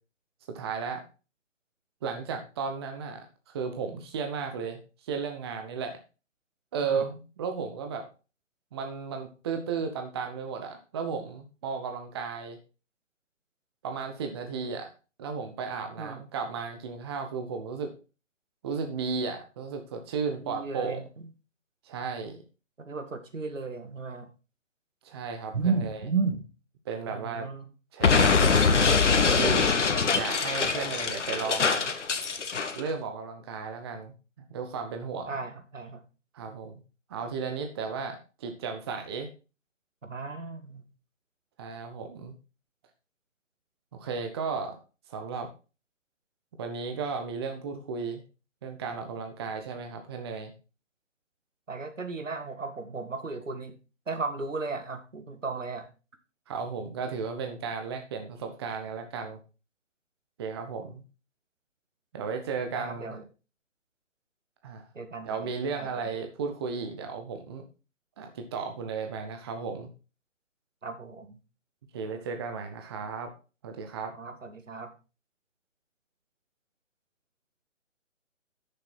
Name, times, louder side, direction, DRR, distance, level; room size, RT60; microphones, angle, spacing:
voice 1, 0.5-1.0 2.0-6.0 6.7-8.1 8.7-12.6 13.8-14.9 15.2-17.9 18.6-21.0 21.8-22.4 25.0-26.0 26.9-27.5 27.9-28.7 29.2-29.7 30.1-31.8 32.8-34.1 34.5-35.3 36.3-36.8 37.1-39.3 41.6-42.3 44.0-44.8 45.1-45.5 46.6-48.2 48.6-50.5 56.5-59.4 60.4-61.0 62.1-63.1 64.6-64.8 65.2-67.6 68.2-69.9 71.9-73.3 73.6-74.1, right 5 dB, 20° right, 5 dB, 0.9 m, -34 dB
voice 2, 20.4-21.3 22.8-24.3 25.5-26.4 27.1-27.7 35.3-36.0 40.0-40.8 51.7-53.8 54.1-55.9 62.7-63.2 64.9-66.2 70.8-71.4 74.1-74.9, right 4 dB, 80° right, 7 dB, 2.0 m, -34 dB
Explosion, 28.0-32.8, left 5 dB, 65° left, 1.4 m, -23 dB
9.9 x 6.7 x 4.3 m, 0.32 s
figure-of-eight pair, 145°, 38 cm